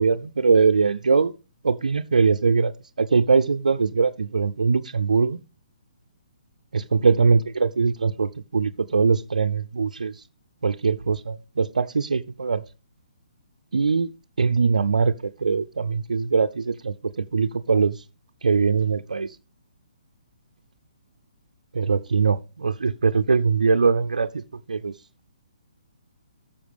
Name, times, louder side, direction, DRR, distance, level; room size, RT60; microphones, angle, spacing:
voice 1, 0.0-1.3 1.6-2.7 3.0-5.4 6.7-10.2 10.6-12.6 13.7-14.1 14.4-15.1 15.4-18.0 18.4-19.4 21.7-24.4 24.7-24.9, right 5 dB, 90° right, 0.4 m, -21 dB
12.5 x 6.9 x 3.4 m
hypercardioid pair, 145°, 4 cm